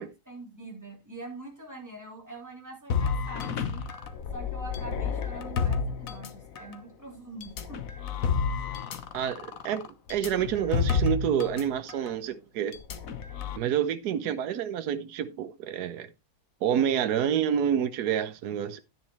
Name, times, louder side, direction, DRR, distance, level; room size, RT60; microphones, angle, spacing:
voice 1, 0.0-3.9 4.3-7.8 14.1-14.4, right 2 dB, 10° right, 3.4 m, -44 dB
sound 1, 2.9-6.8 7.4-11.6 11.9-12.1 12.7-13.6, left 6 dB, 60° left, 1.4 m, -30 dB
voice 2, 9.1-9.8 10.1-12.8 13.6-16.1 16.6-18.8, right 9 dB, 75° right, 1.3 m, -28 dB
10.5 x 9.7 x 3.1 m
omnidirectional pair, 1.7 m